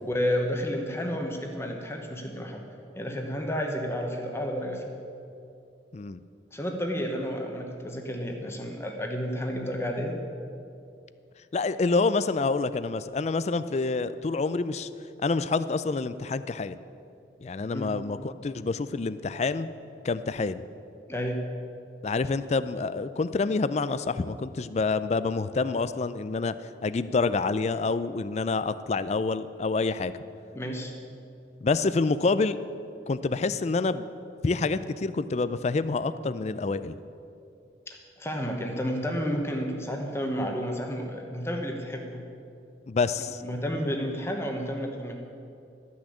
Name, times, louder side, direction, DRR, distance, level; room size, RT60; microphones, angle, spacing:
voice 1, 0.0-2.6 2.9-5.0 6.5-10.2 17.7-17.9 21.1-21.5 30.5-30.9 37.9-42.2 43.4-45.1, equal, 15° left, 2 dB, 1.0 m, -31 dB
voice 2, 11.5-14.9 15.2-16.8 17.4-19.7 20.0-20.6 22.0-26.5 26.8-30.1 31.6-32.6 33.1-34.1 34.4-37.0 42.9-43.4, left 3 dB, 35° left, 14 dB, 0.4 m, -27 dB
12.5 x 6.2 x 8.4 m, 2.6 s
head